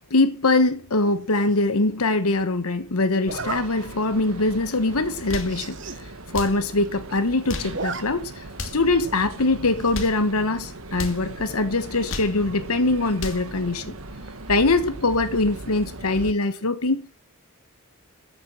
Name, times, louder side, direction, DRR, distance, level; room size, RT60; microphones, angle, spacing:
voice 1, 0.1-8.4 8.7-13.9 14.5-17.1, left 2 dB, 90° left, 1.2 m, -23 dB
Zipper (clothing), 1.3-1.7 3.2-3.6 4.2-4.4 4.7-4.8 5.0-5.1 5.4-6.0 6.4-6.5 6.7-7.2 7.5-8.0 8.4-8.5 9.8-10.2, right 4 dB, 55° right, 1.5 m, -34 dB
sound 1, 3.3-16.3, right 2 dB, 75° right, 1.6 m, -39 dB
sound 2, 5.2-5.6 6.3-6.6 7.3-7.8 8.5-8.9 9.7-10.2 10.9-11.2 11.9-12.4 13.0-13.5, left 2 dB, 60° left, 2.5 m, -34 dB
14.0 x 8.0 x 7.6 m
head